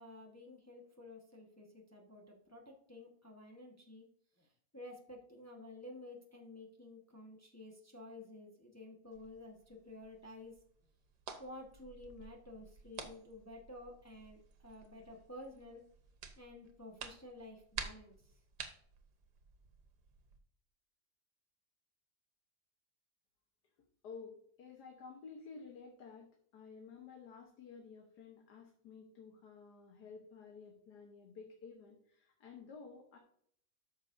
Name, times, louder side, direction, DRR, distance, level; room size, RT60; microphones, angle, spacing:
voice 1, 0.0-4.0 4.4-10.6 11.4-15.8 16.4-18.4, left 2 dB, 10° left, 0 dB, 1.2 m, -52 dB
sound 1, 9.1-20.4, right 6 dB, 90° right, 1.6 m, -51 dB
voice 2, 24.0-33.2, left 5 dB, 80° left, 1 dB, 1.7 m, -53 dB
13.0 x 6.2 x 2.6 m, 0.65 s
omnidirectional pair, 1.7 m